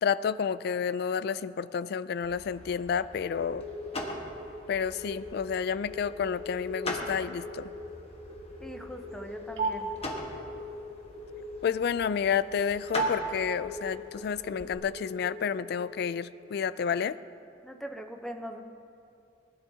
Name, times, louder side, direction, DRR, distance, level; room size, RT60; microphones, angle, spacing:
voice 1, 0.0-3.6 4.7-7.7 11.6-17.2, left 7 dB, 65° left, 16 dB, 0.3 m, -30 dB
sound 1, 2.2-14.8, left 1 dB, 35° left, 1.3 m, -42 dB
sound 2, 3.1-15.9, right 1 dB, 75° right, 1.9 m, -39 dB
voice 2, 8.6-9.9 17.6-18.6, equal, 5° left, 4 dB, 0.7 m, -41 dB
19.5 x 11.0 x 2.8 m, 2.5 s
head